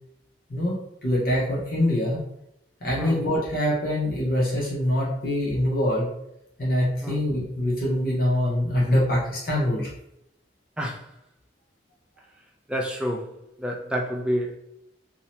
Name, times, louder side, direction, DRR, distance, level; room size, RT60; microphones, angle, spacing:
voice 1, 0.5-2.2 2.8-6.1 6.6-9.9, left 1 dB, 50° left, -6 dB, 0.7 m, -24 dB
voice 2, 12.7-13.3 13.6-14.6, equal, 5° right, 1 dB, 0.3 m, -28 dB
2.7 x 2.1 x 2.9 m, 0.80 s
head